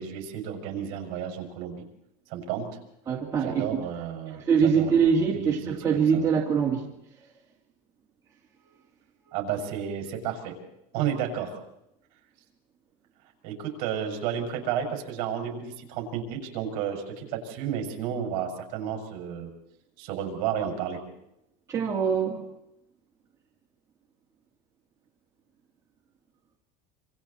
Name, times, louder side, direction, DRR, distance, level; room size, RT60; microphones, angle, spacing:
voice 1, 0.0-1.8 2.3-2.7 3.4-6.3 9.3-10.6 10.9-11.6 13.4-19.5 20.0-21.0, right 8 dB, 50° right, 3 dB, 6.0 m, -32 dB
voice 2, 3.1-3.8 4.5-6.9 21.7-22.4, right 6 dB, 15° right, -3 dB, 2.2 m, -23 dB
27.0 x 26.5 x 4.3 m, 0.85 s
cardioid pair, 180°, 19 cm